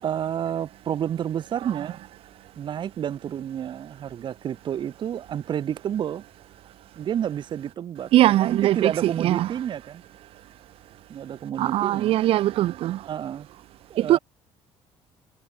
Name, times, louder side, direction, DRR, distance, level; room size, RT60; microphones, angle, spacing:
voice 1, 0.0-2.0 2.6-6.2 6.9-10.0 11.1-12.1 13.1-13.5 13.9-14.2, right 9 dB, 50° right, 4.9 m, -30 dB
voice 2, 8.1-9.5 11.6-13.1 14.0-14.2, right 14 dB, 70° right, 1.1 m, -21 dB
cardioid pair, 120°, 10 cm